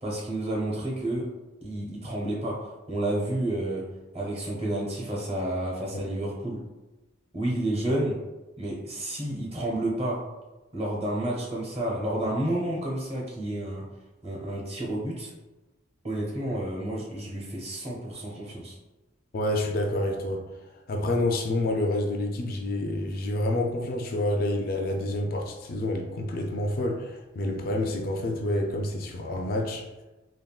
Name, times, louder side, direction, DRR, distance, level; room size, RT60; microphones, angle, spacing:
voice 1, 0.0-1.3 1.6-6.6 7.3-8.2 8.6-10.3 10.7-13.9 14.2-15.3 16.0-18.8, right 1 dB, 35° right, -4 dB, 0.8 m, -30 dB
voice 2, 19.3-20.5 20.9-29.8, left 1 dB, 50° left, 1 dB, 0.4 m, -28 dB
3.5 x 2.2 x 2.3 m, 1.1 s
head